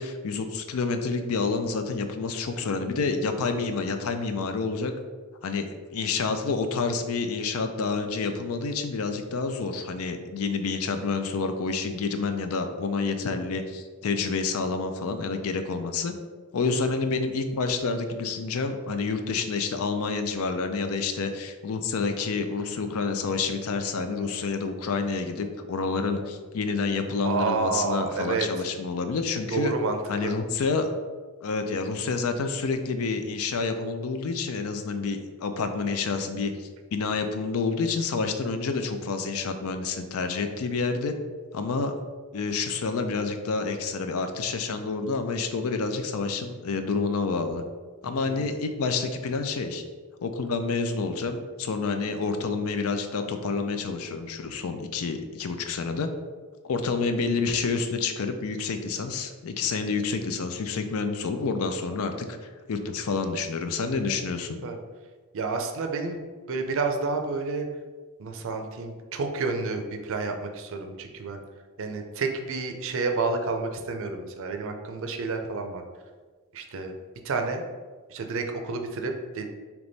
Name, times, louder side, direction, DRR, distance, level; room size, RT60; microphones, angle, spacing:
voice 1, 0.0-4.9 5.4-5.7 5.9-16.1 16.5-29.7 30.1-30.9 31.4-41.1 41.5-41.9 42.3-47.6 48.0-49.8 50.2-56.1 56.6-62.4 62.7-64.6, left 4 dB, 70° left, 7 dB, 0.4 m, -28 dB
voice 2, 27.2-28.5 29.5-30.4 48.3-48.4 64.2-64.3 64.6-64.8 65.3-66.2 66.5-67.7 68.2-71.4 71.8-75.8 76.5-76.9 77.2-77.6 78.1-79.5, right 4 dB, 60° right, 5 dB, 0.5 m, -29 dB
3.5 x 3.0 x 3.9 m, 1.4 s
head